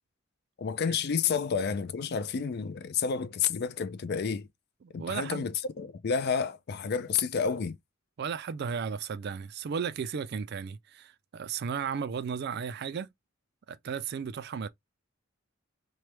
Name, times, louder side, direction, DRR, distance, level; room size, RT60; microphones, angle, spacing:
voice 1, 0.6-4.5 4.9-7.8, left 6 dB, 50° left, 0.4 m, -30 dB
voice 2, 4.8-5.5 8.2-13.1 13.7-14.7, right 6 dB, 50° right, 0.3 m, -35 dB
3.2 x 2.2 x 2.9 m
head